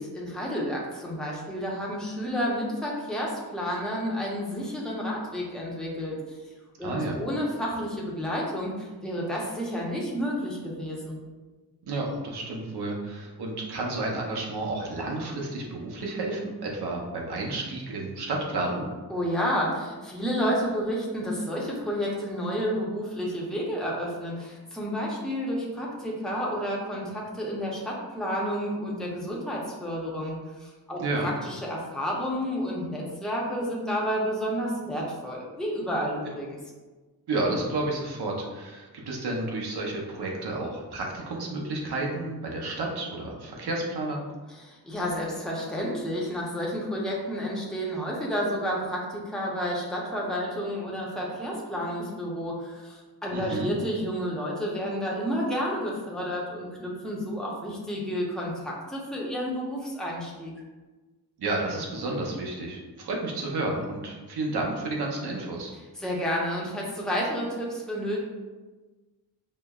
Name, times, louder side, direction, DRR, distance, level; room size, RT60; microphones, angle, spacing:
voice 1, 0.0-6.2 6.8-11.2 19.1-36.6 44.5-60.5 66.0-68.2, equal, ahead, -4 dB, 0.7 m, -30 dB
voice 2, 6.8-7.2 11.8-18.9 31.0-31.3 37.3-44.2 53.3-53.7 61.4-65.7, right 2 dB, 80° right, -1 dB, 0.8 m, -31 dB
5.3 x 2.1 x 2.3 m, 1.3 s
wide cardioid pair, 115°, 39 cm